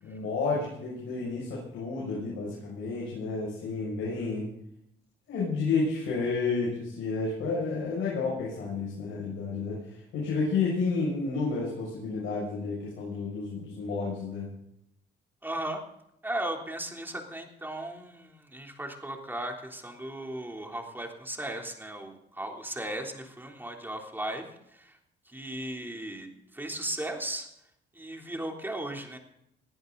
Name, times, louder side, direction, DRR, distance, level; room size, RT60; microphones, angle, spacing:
voice 1, 0.0-4.4 5.3-14.5, left 4 dB, 85° left, -5 dB, 6.8 m, -31 dB
voice 2, 15.4-15.8 16.2-24.4 24.7-25.0 25.2-27.5 27.9-29.2, right 1 dB, 10° right, 2 dB, 3.4 m, -36 dB
21.0 x 14.5 x 4.0 m, 0.78 s
cardioid pair, 90°, 20 cm